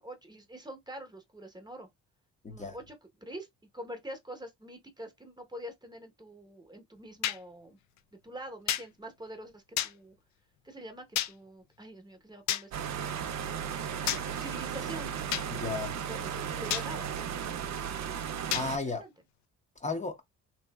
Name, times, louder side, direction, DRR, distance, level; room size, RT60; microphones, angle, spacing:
voice 1, 0.0-1.9 2.5-3.5 3.7-7.8 8.2-10.1 10.6-13.2 14.3-15.1 15.9-17.1 18.8-19.1, right 1 dB, 15° right, 0.9 m, -45 dB
voice 2, 2.4-2.8 15.5-15.9 18.5-19.0 19.8-20.2, left 3 dB, 25° left, 0.7 m, -34 dB
sound 1, 7.2-7.4 8.7-8.9 9.8-9.9 11.2-11.3 12.5-12.6 14.1-14.2 15.3-15.5 16.7-16.9 18.5-18.7, left 12 dB, 65° left, 0.4 m, -30 dB
sound 2, 12.7-18.8, right 8 dB, 60° right, 0.6 m, -35 dB
3.1 x 2.7 x 2.3 m
cardioid pair, 90°, 30 cm